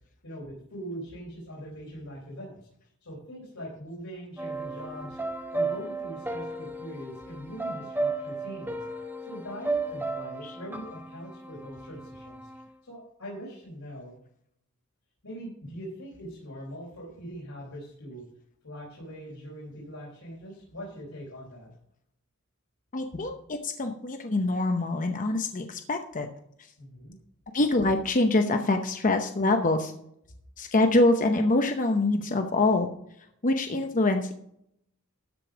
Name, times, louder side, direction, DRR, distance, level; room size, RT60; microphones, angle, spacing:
voice 1, 0.2-2.6 3.0-5.2 5.5-8.8 9.2-12.5 12.8-14.1 15.2-18.2 18.6-21.7 26.8-27.2, equal, 80° left, -5 dB, 4.0 m, -42 dB
sound 1, 4.4-12.6, right 3 dB, 10° right, 1.0 m, -34 dB
voice 2, 22.9-26.3 26.6-26.7 27.5-29.9 30.6-32.9 33.2-34.3, left 2 dB, 40° left, 6 dB, 0.8 m, -25 dB
13.0 x 5.3 x 6.1 m, 0.72 s
head